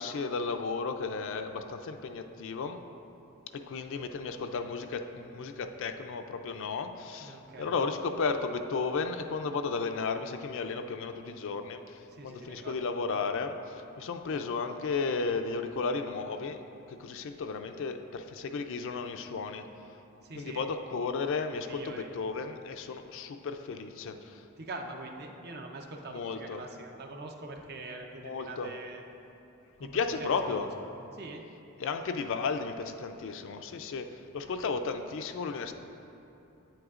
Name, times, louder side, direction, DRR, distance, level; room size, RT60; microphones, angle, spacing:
voice 1, 0.0-2.8 3.5-16.6 16.9-19.7 20.4-24.4 26.1-26.6 28.2-28.7 29.8-30.7 31.8-34.1 34.3-35.7, left 4 dB, 65° left, 7 dB, 0.4 m, -34 dB
voice 2, 7.2-7.8 12.1-12.8 20.2-20.6 21.6-22.1 24.6-29.0 29.8-31.4, right 2 dB, 50° right, 3 dB, 0.6 m, -44 dB
8.6 x 7.8 x 2.4 m, 2.9 s
head